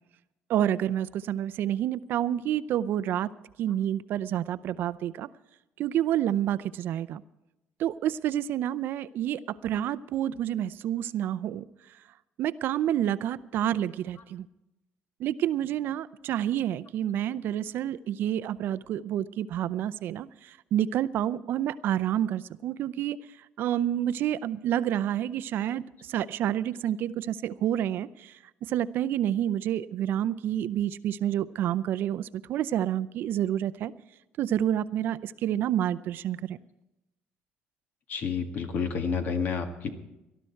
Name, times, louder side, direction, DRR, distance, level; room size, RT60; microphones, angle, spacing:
voice 1, 0.5-3.3 3.6-5.3 5.8-7.2 7.8-12.0 12.4-14.5 15.2-33.9 34.4-36.6, right 11 dB, 65° right, 16 dB, 0.5 m, -29 dB
voice 2, 38.1-39.9, left 6 dB, 50° left, 7 dB, 1.8 m, -29 dB
19.0 x 12.0 x 4.5 m, 0.94 s
cardioid pair, 135°, 4 cm